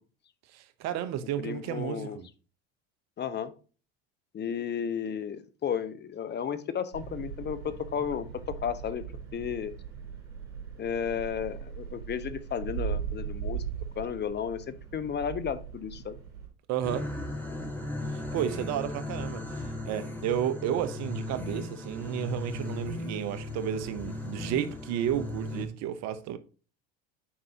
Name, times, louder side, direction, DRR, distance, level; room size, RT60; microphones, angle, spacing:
voice 1, 0.5-2.3 16.7-17.1 18.1-26.4, right 10 dB, 55° right, 1.0 m, -32 dB
voice 2, 1.4-2.2 3.2-3.5 4.3-8.3 8.6-9.0 9.3-9.7 10.8-13.6 14.0-16.2, left 8 dB, 35° left, 0.9 m, -33 dB
sound 1, 6.9-16.5, right 7 dB, 80° right, 3.1 m, -39 dB
sound 2, 16.8-25.7, left 2 dB, 5° left, 3.4 m, -37 dB
8.8 x 5.3 x 2.8 m
hypercardioid pair, 75°, 31 cm